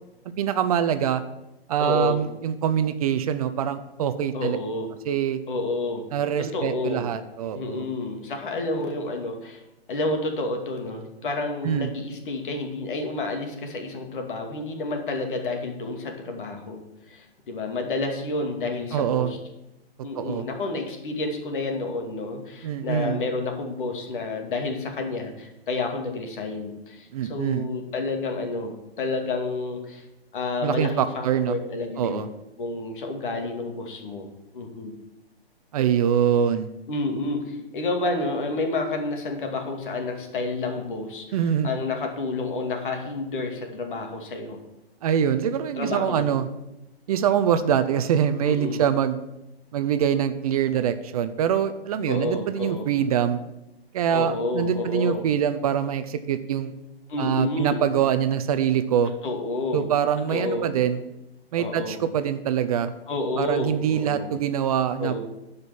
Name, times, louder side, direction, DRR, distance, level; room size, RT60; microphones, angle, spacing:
voice 1, 0.4-1.2 1.7-4.6 5.1-5.4 6.1-7.8 11.6-11.9 18.9-19.3 20.2-20.4 22.6-23.2 27.1-27.7 30.6-31.6 32.0-32.3 35.7-36.7 41.3-41.7 45.0-46.5 47.1-49.2 49.7-53.4 53.9-56.7 57.2-59.1 59.7-61.0 61.5-62.9 63.4-65.2, right 9 dB, 35° right, 11 dB, 0.7 m, -24 dB
voice 2, 1.8-2.2 4.3-4.9 5.5-6.0 6.5-7.1 7.5-9.6 9.9-19.4 20.0-30.0 30.3-32.3 32.6-34.3 34.5-34.9 36.9-41.4 41.6-44.6 45.8-46.3 48.4-48.8 52.1-52.9 54.1-55.2 57.1-57.8 59.2-59.9 60.3-60.7 61.6-62.0 63.1-64.3 65.0-65.2, left 2 dB, 55° left, 4 dB, 2.5 m, -30 dB
11.0 x 5.2 x 7.2 m, 0.93 s
figure-of-eight pair, 125°, 31 cm